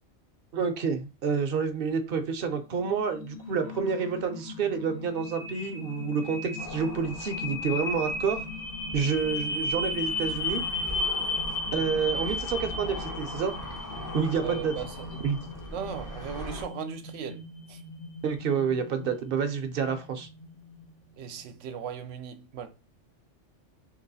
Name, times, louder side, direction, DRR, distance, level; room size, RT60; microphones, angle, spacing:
voice 1, 0.5-8.5 8.9-10.6 11.7-13.5 14.1-14.7 15.2-15.4 18.2-20.3, right 6 dB, 60° right, 0.7 m, -29 dB
sound 1, 2.8-20.8, left 2 dB, 60° left, 1.2 m, -35 dB
sound 2, 6.6-16.6, left 1 dB, 25° left, 0.5 m, -41 dB
voice 2, 14.4-15.2 15.7-17.4 17.7-17.8 21.2-22.7, right 7 dB, 85° right, 0.9 m, -37 dB
3.0 x 3.0 x 4.0 m
omnidirectional pair, 1.2 m